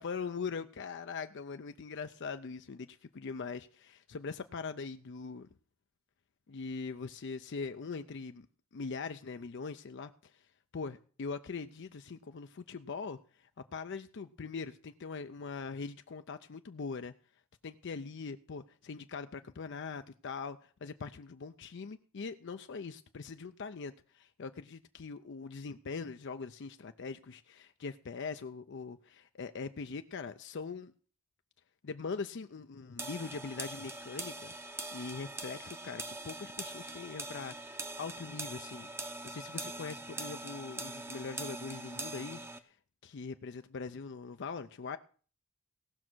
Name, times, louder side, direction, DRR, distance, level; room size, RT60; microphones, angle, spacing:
voice 1, 0.0-5.5 6.5-8.5 8.7-10.4 10.7-17.1 17.6-30.9 31.8-34.5 34.9-38.9 39.2-42.4 43.0-45.0, left 5 dB, 55° left, 9 dB, 0.5 m, -42 dB
sound 1, 33.0-42.6, right 2 dB, 10° right, 0.7 m, -42 dB
17.5 x 6.2 x 6.1 m, 0.41 s
head